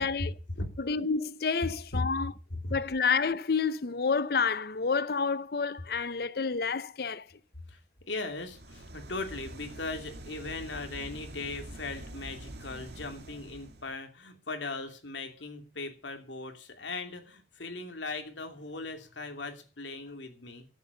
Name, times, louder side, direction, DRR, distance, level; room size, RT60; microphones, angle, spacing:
voice 1, 0.0-0.7 1.9-2.1 2.5-2.7 7.7-7.8 8.1-20.7, left 3 dB, 90° left, 2.9 m, -38 dB
voice 2, 0.8-2.3 2.7-7.2, left 5 dB, 55° left, 0.6 m, -29 dB
sound 1, 8.2-13.9, right 1 dB, 65° right, 1.8 m, -45 dB
13.0 x 8.2 x 6.8 m
head